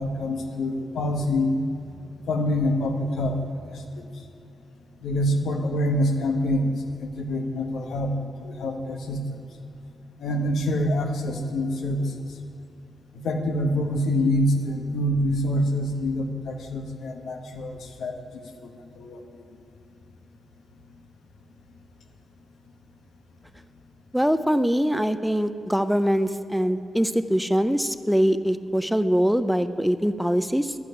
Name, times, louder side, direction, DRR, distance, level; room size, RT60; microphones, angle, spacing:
voice 1, 0.0-1.5 2.3-3.4 3.6-4.0 5.0-6.7 7.0-8.1 8.4-9.2 10.2-12.1 13.1-18.2 18.6-18.7 18.9-19.2, left 1 dB, 90° left, 4 dB, 1.5 m, -26 dB
voice 2, 24.1-30.8, equal, ahead, 11 dB, 0.5 m, -23 dB
11.0 x 9.8 x 9.6 m, 2.7 s
wide cardioid pair, 120°, 0 cm